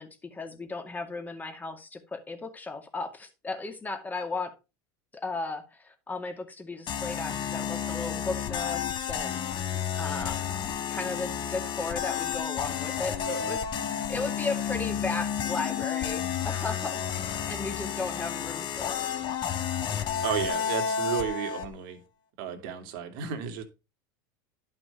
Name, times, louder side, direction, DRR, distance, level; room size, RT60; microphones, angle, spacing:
voice 1, 0.0-4.5 5.1-9.7 10.0-10.5 10.9-13.7 14.1-19.1, left 3 dB, 15° left, 5 dB, 2.2 m, -36 dB
sound 1, 6.9-21.7, left 8 dB, 40° left, 1.6 m, -31 dB
voice 2, 20.2-22.0 22.4-23.6, right 9 dB, 70° right, 6 dB, 2.6 m, -33 dB
11.5 x 6.2 x 4.5 m, 0.29 s
supercardioid pair, 120°, 12 cm